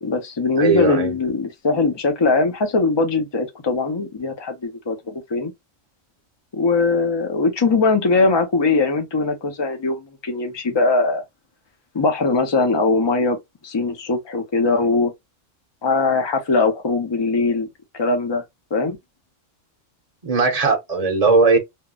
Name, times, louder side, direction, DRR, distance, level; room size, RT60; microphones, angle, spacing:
voice 1, 0.0-5.5 6.5-11.2 11.9-13.4 13.6-15.1 15.8-17.7 17.9-18.4 18.7-19.0, left 3 dB, 30° left, 0.5 m, -20 dB
voice 2, 0.6-1.1 20.2-21.6, right 4 dB, 35° right, 0.7 m, -18 dB
3.5 x 2.0 x 2.3 m
omnidirectional pair, 1.3 m